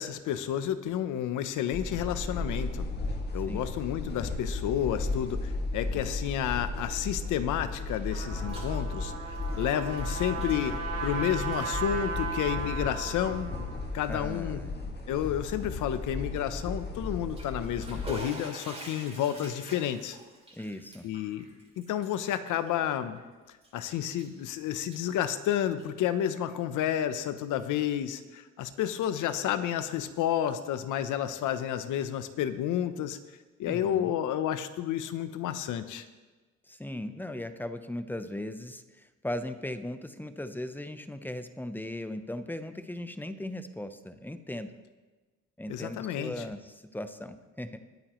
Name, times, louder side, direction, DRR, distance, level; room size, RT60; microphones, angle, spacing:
voice 1, 0.0-2.9 3.3-13.5 13.9-14.6 15.1-20.2 21.0-21.4 21.8-23.2 23.7-33.2 33.6-36.1 45.7-46.5, left 10 dB, 85° left, 11 dB, 0.8 m, -31 dB
sound 1, 1.7-18.1, left 3 dB, 35° left, 1.9 m, -35 dB
Trumpet, 7.8-13.8, right 5 dB, 65° right, 4.4 m, -36 dB
Bathtub (filling or washing), 8.4-8.8 9.1-11.2 11.4-11.7 12.5-12.6 13.3-13.4 13.8-13.9 17.1-23.2 23.6-24.4 24.7-26.0, right 2 dB, 20° right, 3.5 m, -47 dB
voice 2, 14.1-14.8 20.5-21.0 33.7-34.1 36.7-44.7 45.6-47.8, left 1 dB, 5° left, 9 dB, 0.8 m, -38 dB
20.5 x 8.9 x 3.1 m, 1.3 s
cardioid pair, 90°, 30 cm